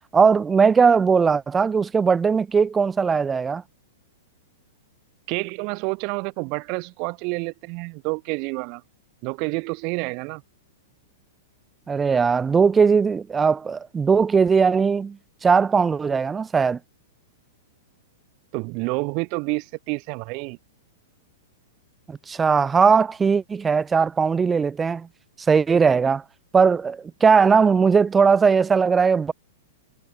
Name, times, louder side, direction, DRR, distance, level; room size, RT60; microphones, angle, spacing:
voice 1, 0.1-3.6 11.9-15.2 15.4-16.8 22.1-25.1 25.5-26.2 26.5-29.3, right 5 dB, 15° right, 0.3 m, -19 dB
voice 2, 5.3-8.8 9.2-10.4 18.5-20.6, right 33 dB, 45° right, 0.7 m, -28 dB
hypercardioid pair, 135°, 0 cm